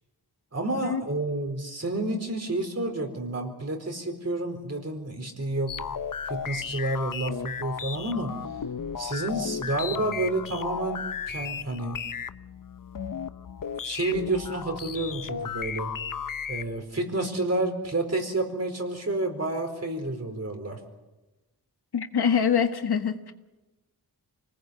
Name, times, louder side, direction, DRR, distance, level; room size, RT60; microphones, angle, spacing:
voice 1, 0.5-5.7 6.3-8.3 9.0-12.0 13.8-15.9 16.5-20.8, right 2 dB, 40° right, 5 dB, 4.4 m, -30 dB
sound 1, 5.7-16.8, left 7 dB, 55° left, 0.8 m, -35 dB
voice 2, 21.9-23.3, left 7 dB, 80° left, 8 dB, 1.6 m, -24 dB
25.0 x 19.5 x 8.2 m, 1.1 s
wide cardioid pair, 65°, 38 cm